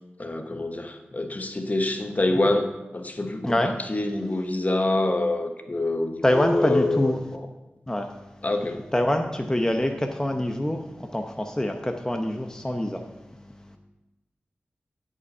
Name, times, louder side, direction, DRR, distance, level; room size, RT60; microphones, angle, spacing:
voice 1, 0.2-2.7 2.9-3.5 3.9-7.1 8.4-8.8, left 2 dB, 40° left, 6 dB, 1.1 m, -25 dB
voice 2, 3.4-3.9 6.2-7.2 7.9-13.8, left 1 dB, 15° left, 4 dB, 0.8 m, -26 dB
12.0 x 5.4 x 5.5 m, 1.0 s
cardioid pair, 45°, 4 cm